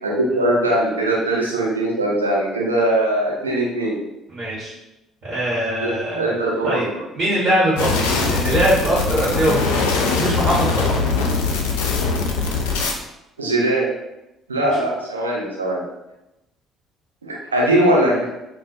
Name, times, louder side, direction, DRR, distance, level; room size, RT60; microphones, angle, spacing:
voice 1, 0.0-4.0 5.8-6.9 13.4-13.9 14.5-15.8 17.2-18.2, right 1 dB, 85° right, -4 dB, 0.6 m, -20 dB
voice 2, 4.3-4.7 5.2-6.9 7.1-9.9 10.2-11.0 14.7-14.8, right 1 dB, 50° right, -7 dB, 1.0 m, -22 dB
sound 1, 7.8-12.9, left 4 dB, 70° left, 0.4 m, -21 dB
2.3 x 2.2 x 3.9 m, 0.92 s
figure-of-eight pair, 50°, 0 cm